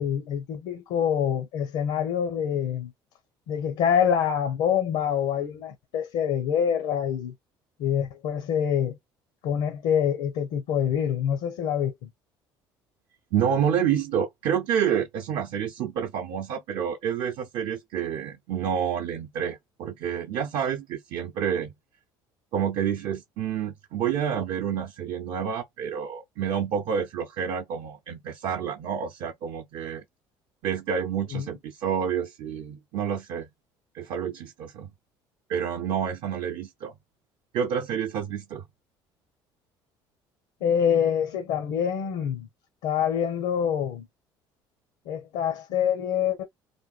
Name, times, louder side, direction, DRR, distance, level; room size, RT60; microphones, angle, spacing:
voice 1, 0.0-2.9 3.5-7.3 7.8-9.0 9.4-12.1 31.3-31.5 40.6-42.5 42.8-44.1 45.1-46.4, left 8 dB, 80° left, 0.8 m, -26 dB
voice 2, 13.3-21.7 22.5-30.0 30.6-33.5 33.9-34.9 35.5-36.9 37.5-38.6, right 8 dB, 65° right, 0.6 m, -28 dB
3.4 x 2.2 x 2.4 m
cardioid pair, 105°, 10 cm